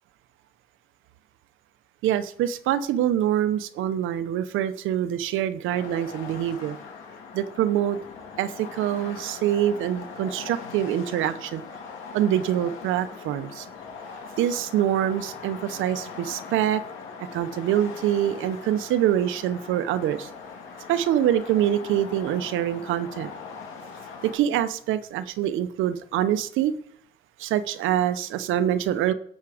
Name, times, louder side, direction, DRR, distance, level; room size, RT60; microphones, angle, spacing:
voice 1, 2.0-6.8 7.3-8.0 8.4-11.6 12.1-13.7 14.4-16.8 17.3-20.3 20.9-23.3 24.2-26.8 27.4-29.1, right 11 dB, 90° right, 0.8 m, -25 dB
sound 1, 5.7-24.4, left 5 dB, 85° left, 2.1 m, -41 dB
12.0 x 7.3 x 4.9 m
cardioid pair, 90°, 20 cm